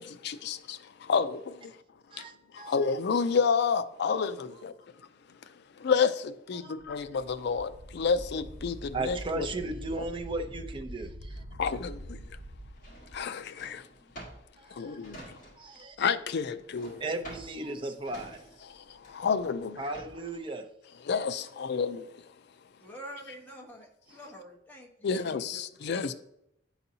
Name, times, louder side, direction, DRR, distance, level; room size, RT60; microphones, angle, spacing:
voice 1, 0.0-1.8 2.1-2.3 2.5-4.7 5.5-9.5 11.6-12.3 13.1-13.9 14.7-15.4 16.0-17.0 18.7-19.8 21.0-22.3 25.0-26.1, left 5 dB, 60° left, 0.4 m, -30 dB
voice 2, 2.1-2.7 6.5-6.7 8.9-11.4 14.6-15.1 15.6-16.0 17.0-18.5 19.8-20.7 24.1-24.2, right 2 dB, 25° right, 0.6 m, -36 dB
Wind, 6.8-13.2, equal, 75° right, 1.0 m, -44 dB
Drawer open or close, 12.7-15.9 16.1-20.4, right 1 dB, 45° left, 1.9 m, -49 dB
voice 3, 22.8-25.6 25.9-26.1, equal, 10° left, 1.0 m, -47 dB
10.5 x 4.1 x 2.7 m
head